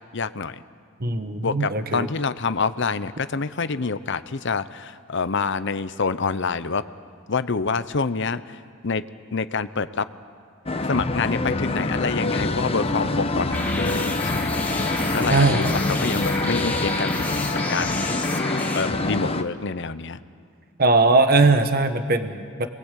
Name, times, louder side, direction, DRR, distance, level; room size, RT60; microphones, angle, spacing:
voice 1, 0.1-0.6 1.4-6.8 7.3-8.6 8.8-9.0 9.3-10.1 10.9-14.5 15.1-15.6 16.0-17.3 17.7-18.0 18.7-20.2, left 4 dB, 60° left, 13 dB, 0.8 m, -26 dB
voice 2, 1.0-2.1 15.3-15.8 20.8-22.7, right 3 dB, 50° right, 8 dB, 1.2 m, -20 dB
sound 1, 10.7-19.4, left 2 dB, 30° left, 1.0 m, -25 dB
sound 2, 13.5-18.9, left 2 dB, 10° left, 1.5 m, -31 dB
29.5 x 21.5 x 8.3 m, 2.3 s
head